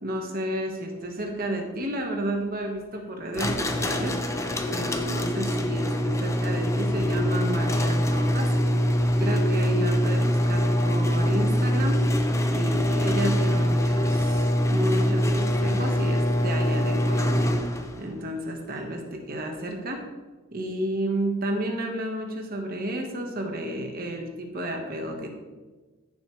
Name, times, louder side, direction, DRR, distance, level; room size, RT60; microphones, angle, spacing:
voice 1, 0.0-8.5 9.2-12.0 12.5-20.0 20.5-25.4, right 1 dB, 45° right, 2 dB, 1.4 m, -31 dB
sound 1, 3.3-18.0, equal, 15° left, 0.6 m, -24 dB
14.0 x 7.2 x 3.2 m, 1.3 s
head